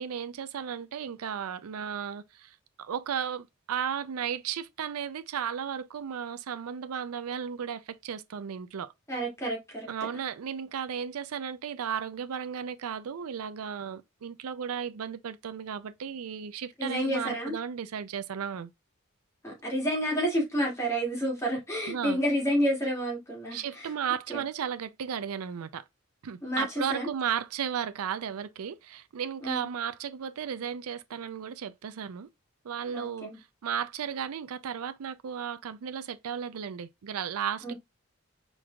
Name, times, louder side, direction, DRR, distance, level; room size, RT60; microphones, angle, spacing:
voice 1, 0.0-8.9 9.9-18.7 21.9-22.2 23.5-25.8 26.2-32.3 32.6-37.7, right 8 dB, 90° right, 0.4 m, -34 dB
voice 2, 9.1-9.9 16.8-17.6 19.4-23.9 24.3-24.4 26.4-27.1 29.4-29.7 32.9-33.4 37.6-37.7, equal, 15° left, 2.2 m, -30 dB
4.6 x 3.9 x 2.3 m
head